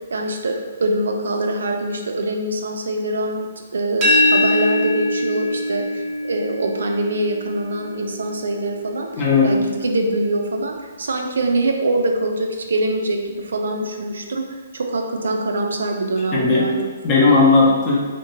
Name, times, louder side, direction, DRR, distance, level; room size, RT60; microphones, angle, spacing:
voice 1, 0.1-9.1 9.4-14.4 14.7-16.9, right 2 dB, 70° right, 2 dB, 0.3 m, -24 dB
sound 1, 4.0-9.8, left 1 dB, 30° right, 0.7 m, -23 dB
voice 2, 9.1-9.6 16.3-16.7 17.0-18.0, left 3 dB, 30° left, -4 dB, 0.6 m, -15 dB
2.5 x 2.1 x 2.9 m, 1.4 s
figure-of-eight pair, 130°, 0 cm